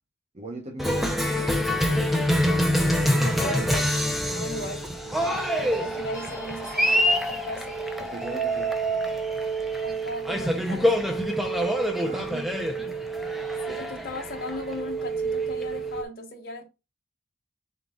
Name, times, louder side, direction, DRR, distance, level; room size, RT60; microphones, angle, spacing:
voice 1, 0.3-2.2 5.0-5.7 8.0-9.0 12.0-13.1, right 2 dB, 40° right, 0.9 m, -41 dB
Cheering, 0.8-16.0, left 1 dB, ahead, 0.6 m, -26 dB
sound 1, 1.6-16.0, right 5 dB, 15° left, 0.9 m, -33 dB
voice 2, 3.0-3.9 4.2-4.8 5.2-7.8 9.8-11.2 13.7-16.7, left 1 dB, 55° left, 1.3 m, -37 dB
3.9 x 3.6 x 3.6 m
head